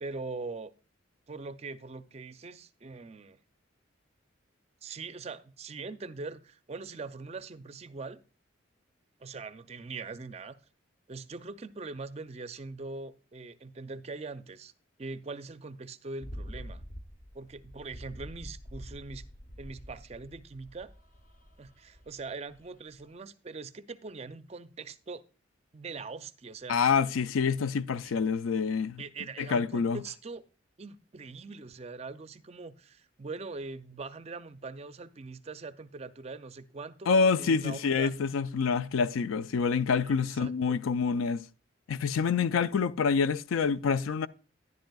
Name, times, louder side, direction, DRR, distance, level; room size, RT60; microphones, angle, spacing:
voice 1, 0.0-0.7 1.3-3.4 4.8-8.2 9.2-10.6 11.1-14.7 15.0-16.8 17.3-19.3 19.6-20.9 21.6-25.2 25.7-26.8 29.0-30.4 30.8-37.1 37.4-38.1 40.0-40.7, right 3 dB, 30° right, 0.4 m, -42 dB
sound 1, 16.2-22.6 22.9-23.1, equal, 40° left, 0.9 m, -46 dB
voice 2, 26.7-29.0 29.4-30.0 37.1-41.4 41.9-44.3, left 5 dB, 90° left, 0.4 m, -27 dB
10.5 x 10.5 x 2.3 m
head